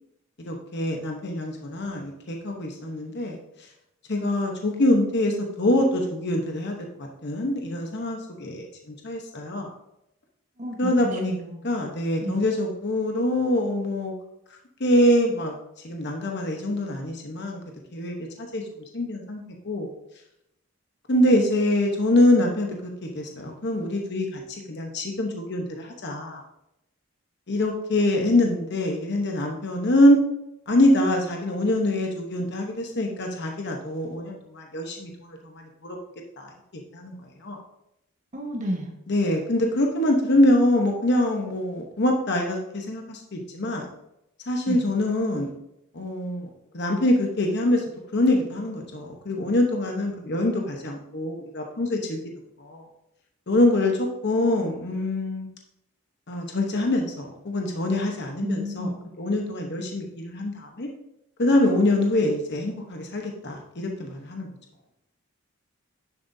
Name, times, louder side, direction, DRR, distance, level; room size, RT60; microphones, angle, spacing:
voice 1, 0.5-3.4 4.1-8.7 9.0-9.7 10.8-11.4 11.6-14.1 14.8-15.5 15.8-17.6 17.9-18.6 18.9-19.9 21.1-26.4 27.5-30.2 30.7-36.0 36.4-36.5 36.9-37.1 37.4-37.6 39.1-43.9 44.5-45.5 45.9-46.5 46.7-47.8 48.1-52.2 52.6-52.8 53.5-55.5 56.3-58.9 59.2-60.9 61.4-64.5, left 1 dB, 55° left, 1 dB, 1.0 m, -24 dB
voice 2, 10.6-11.7 12.2-12.4 38.3-38.9 44.7-44.8 58.4-59.0, equal, 35° right, 1 dB, 1.3 m, -31 dB
10.0 x 7.4 x 2.7 m, 0.85 s
head